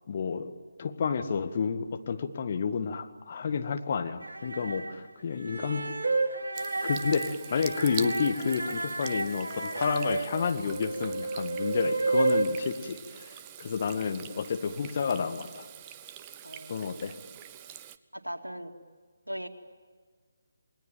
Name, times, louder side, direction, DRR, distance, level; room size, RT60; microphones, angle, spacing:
voice 1, 0.1-0.5 0.8-5.9 6.8-13.3 13.6-15.7 16.7-17.1, left 6 dB, 40° left, 7 dB, 1.8 m, -30 dB
sound 1, 4.2-4.9 5.5-12.5, right 3 dB, 60° right, 3.2 m, -31 dB
Water tap faucet / Sink (filling or washing), 6.5-18.0, right 10 dB, 20° right, 0.8 m, -45 dB
voice 2, 16.4-17.1 18.1-18.7 19.3-19.5, equal, 85° right, 6 dB, 2.5 m, -40 dB
28.5 x 21.0 x 9.1 m, 1.5 s
figure-of-eight pair, 150°, 0 cm